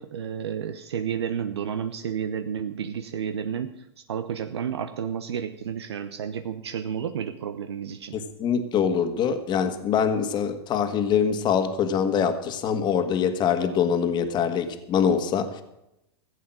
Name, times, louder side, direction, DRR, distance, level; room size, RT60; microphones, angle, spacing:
voice 1, 0.0-8.2, right 8 dB, 75° right, 8 dB, 0.8 m, -31 dB
voice 2, 8.4-15.6, left 7 dB, 35° left, 8 dB, 1.6 m, -24 dB
15.5 x 8.3 x 7.5 m, 0.86 s
hypercardioid pair, 100°, 14 cm